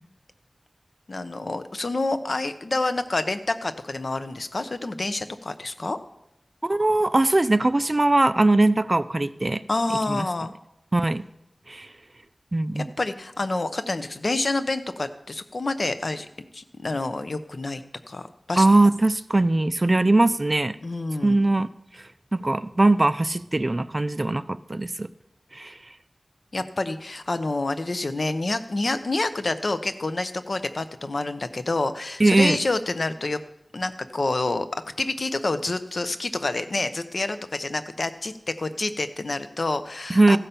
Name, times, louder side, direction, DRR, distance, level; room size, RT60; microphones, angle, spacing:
voice 1, 1.1-6.0 9.7-10.5 12.7-16.3 16.5-18.7 20.8-21.4 26.5-33.4 33.7-34.7 35.0-40.4, left 2 dB, 65° left, 10 dB, 0.7 m, -28 dB
voice 2, 6.6-9.6 10.1-10.3 10.9-11.2 11.7-11.9 12.5-12.9 18.6-20.8 21.2-21.7 22.3-25.1 25.5-25.7 32.2-32.6 40.1-40.4, right 2 dB, 35° right, 14 dB, 0.4 m, -20 dB
15.0 x 5.7 x 6.8 m, 0.82 s
wide cardioid pair, 70°, 0 cm